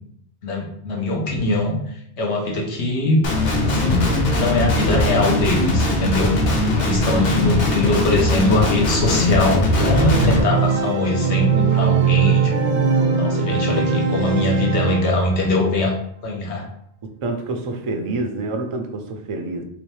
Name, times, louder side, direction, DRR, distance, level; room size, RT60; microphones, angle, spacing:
voice 1, 0.4-3.2 3.6-6.3 6.8-12.5 13.1-16.0 16.2-16.7, left 2 dB, 85° left, 0 dB, 1.1 m, -22 dB
Guitar, 3.2-10.4, left 2 dB, 50° left, 0.7 m, -20 dB
Organ, 9.8-15.5, right 5 dB, 85° right, 0.9 m, -20 dB
voice 2, 17.0-19.6, right 2 dB, 50° right, 4 dB, 0.3 m, -27 dB
3.1 x 3.1 x 3.1 m, 0.69 s
omnidirectional pair, 1.1 m